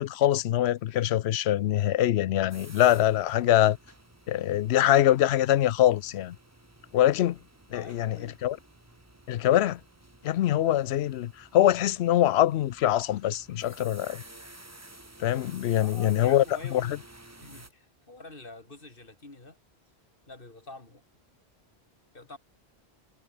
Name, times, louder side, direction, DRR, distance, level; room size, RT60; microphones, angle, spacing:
voice 1, 0.0-3.8 4.3-6.4 6.9-7.4 7.7-8.6 9.3-9.8 10.2-14.2 15.2-16.4 16.7-17.0, left 12 dB, 85° left, 0.8 m, -24 dB
sound 1, 2.5-17.7, right 2 dB, 15° right, 1.4 m, -52 dB
voice 2, 7.7-8.4 15.7-17.0 17.4-19.6 20.3-21.0 22.1-22.4, left 2 dB, 55° left, 3.5 m, -46 dB
omnidirectional pair, 1.1 m